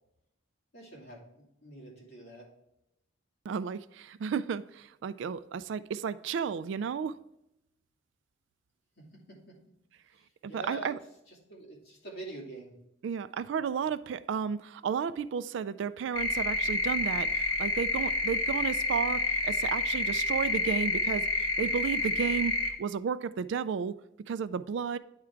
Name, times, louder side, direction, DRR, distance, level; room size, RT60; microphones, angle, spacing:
voice 1, 0.7-2.5 9.3-9.6 10.5-10.9 11.3-12.7, right 1 dB, 50° left, 2.6 m, -45 dB
voice 2, 3.5-7.2 10.4-11.0 13.0-23.9 24.3-25.0, right 6 dB, 60° right, 0.3 m, -33 dB
sound 1, 16.1-22.7, left 3 dB, 85° left, 1.1 m, -29 dB
9.6 x 3.6 x 4.5 m
head